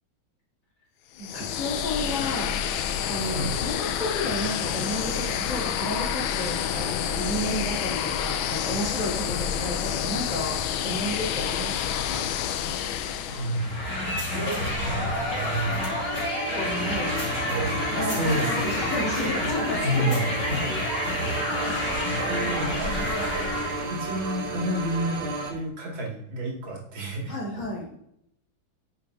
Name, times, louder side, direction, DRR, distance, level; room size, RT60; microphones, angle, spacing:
sound 1, 1.2-13.8, left 9 dB, 85° left, 1.4 m, -29 dB
voice 1, 1.2-2.5 3.1-10.6 10.8-12.2 16.4-17.1 18.0-20.3 27.3-27.9, left 1 dB, 55° left, -6 dB, 3.6 m, -32 dB
voice 2, 13.2-13.8 14.1-16.3 17.5-18.5 19.8-20.2 20.5-20.8 21.1-21.6 22.3-22.9 23.9-27.4, right 1 dB, 70° right, -2 dB, 3.0 m, -31 dB
sound 2, 13.5-23.9, left 1 dB, 40° left, 3.0 m, -29 dB
sound 3, 14.3-25.5, right 2 dB, 90° right, 2.0 m, -33 dB
9.8 x 6.9 x 2.7 m, 0.75 s
omnidirectional pair, 2.2 m